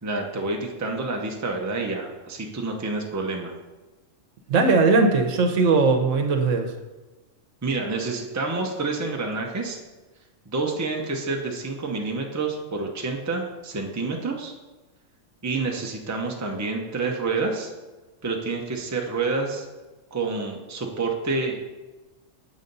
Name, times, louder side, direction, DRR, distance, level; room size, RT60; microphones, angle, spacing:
voice 1, 0.0-3.5 7.6-9.8 10.5-14.5 15.4-17.7 18.2-19.6 20.1-21.7, right 3 dB, 15° right, 1 dB, 0.6 m, -28 dB
voice 2, 4.5-6.7, right 3 dB, 80° right, 5 dB, 1.1 m, -19 dB
7.5 x 4.0 x 5.3 m, 1.1 s
omnidirectional pair, 1.3 m